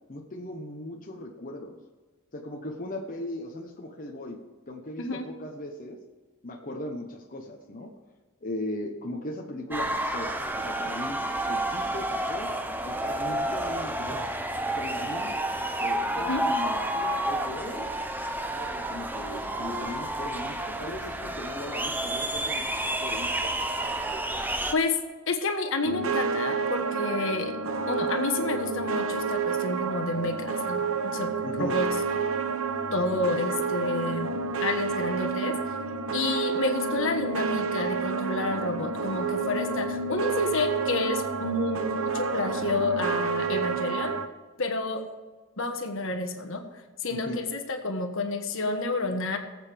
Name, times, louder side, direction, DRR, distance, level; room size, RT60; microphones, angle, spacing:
voice 1, 0.1-1.8 2.3-4.4 4.7-6.0 6.4-7.9 8.4-12.5 12.8-14.3 14.7-15.4 15.8-17.9 18.5-23.5 31.4-31.7 47.1-47.4, left 1 dB, 40° left, 0 dB, 1.1 m, -38 dB
sound 1, 9.7-24.7, right 1 dB, 10° right, 0.7 m, -30 dB
voice 2, 25.3-27.6 27.9-31.3 31.6-31.9 32.9-35.6 36.1-44.1 44.6-45.0 45.6-46.6 47.0-49.4, left 2 dB, 60° left, 5 dB, 1.4 m, -29 dB
sound 2, 25.8-44.3, right 5 dB, 65° right, 0.9 m, -29 dB
19.5 x 8.0 x 3.5 m, 1.4 s
head